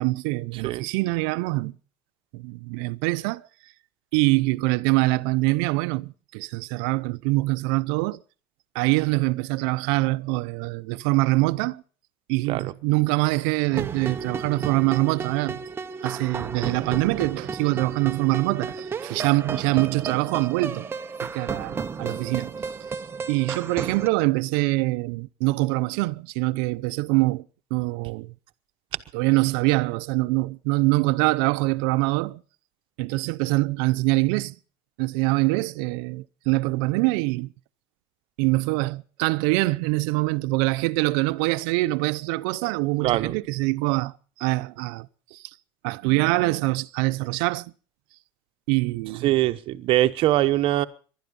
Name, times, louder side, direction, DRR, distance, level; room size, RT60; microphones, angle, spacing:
voice 1, 0.0-1.8 2.3-3.5 4.1-8.2 8.7-11.8 12.3-15.6 16.0-20.9 21.2-22.5 23.3-27.4 27.7-28.3 29.1-32.4 33.0-34.6 35.0-37.5 38.4-45.4 45.8-47.7 48.7-49.3, right 22 dB, 70° right, 0.7 m, -24 dB
sound 1, 13.7-24.1, right 5 dB, 20° right, 0.8 m, -33 dB
voice 2, 43.0-43.4 49.2-50.9, right 15 dB, 45° right, 1.0 m, -22 dB
19.5 x 12.0 x 5.3 m
cardioid pair, 145°, 13 cm